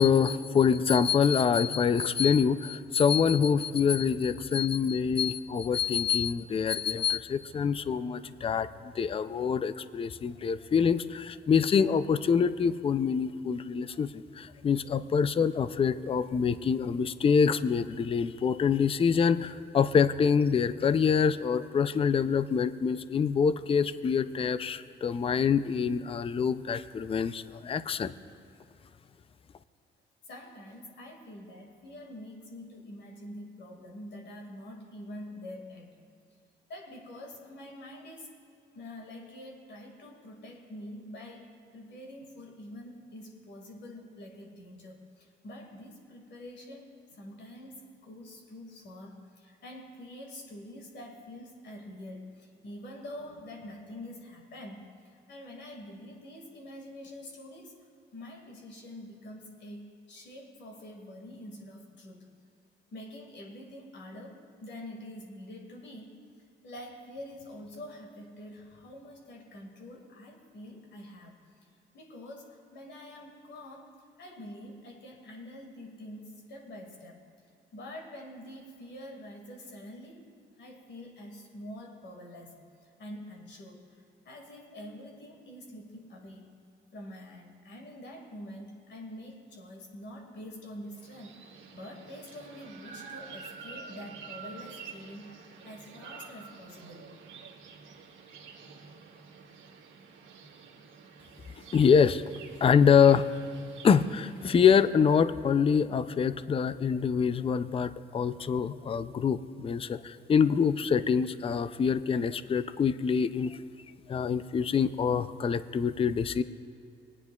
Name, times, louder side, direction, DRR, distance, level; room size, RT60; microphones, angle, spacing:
voice 1, 0.0-28.1 101.7-102.2 102.6-103.3 103.8-113.6 114.1-116.4, left 6 dB, 30° left, 13 dB, 0.4 m, -25 dB
voice 2, 30.3-36.0 36.7-38.3 38.7-62.3 62.9-66.1 66.6-71.5 71.9-73.9 74.2-77.3 77.7-80.3 80.6-86.5 86.9-91.4 91.7-97.1, left 1 dB, 65° left, 0 dB, 2.1 m, -46 dB
sound 1, 90.9-104.9, right 5 dB, 80° right, 1.5 m, -49 dB
22.5 x 9.7 x 2.4 m, 2.5 s
cardioid pair, 90°, 20 cm